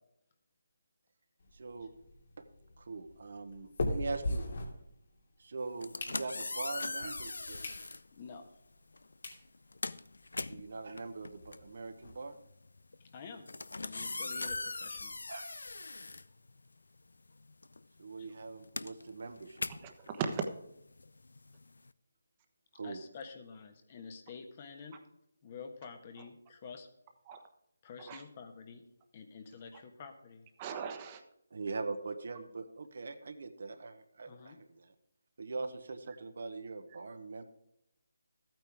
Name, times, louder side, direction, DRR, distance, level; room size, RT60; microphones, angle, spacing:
sound 1, 1.4-5.3 5.7-6.7 7.2-7.3 7.6-7.8 8.3-8.4 8.9-9.0 9.2-9.4 9.9-10.0 10.1-10.3 10.5-10.6 11.0-12.1, left 1 dB, 60° left, 2.6 m, -39 dB
voice 1, 1.5-1.9 2.4-2.5 2.8-4.4 5.4-7.6 10.5-12.4 15.3-15.5 18.0-19.9 22.7-23.0 31.5-34.9 35.4-37.4, right 3 dB, 60° right, 8 dB, 1.1 m, -42 dB
sound 2, 5.7-8.1 8.9-9.1 9.5-17.0 17.3-21.9, left 3 dB, 80° left, 0.5 m, -41 dB
voice 2, 8.1-8.4 13.0-13.5 13.8-15.2 18.2-18.3 22.8-25.0 25.4-26.9 27.8-28.8 29.1-30.4 34.3-34.6, left 5 dB, 35° left, 6 dB, 1.3 m, -48 dB
voice 3, 19.8-20.4 27.3-27.4 28.0-28.2 29.7-29.8 30.6-31.2, right 6 dB, 25° right, 6 dB, 1.1 m, -38 dB
13.0 x 9.1 x 3.6 m, 0.80 s
figure-of-eight pair, 160°, 0 cm